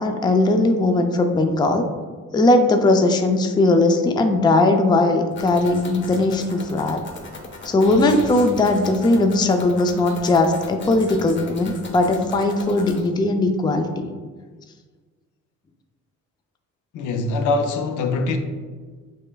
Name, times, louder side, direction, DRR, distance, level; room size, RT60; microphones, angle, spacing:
voice 1, 0.0-1.8 2.3-7.0 7.7-14.1, left 2 dB, 15° left, 0.3 m, -19 dB
sound 1, 5.3-13.1, left 3 dB, 40° left, 0.7 m, -38 dB
voice 2, 16.9-18.4, left 3 dB, 80° left, 0.5 m, -23 dB
5.4 x 3.2 x 2.2 m
cardioid pair, 90°, 30 cm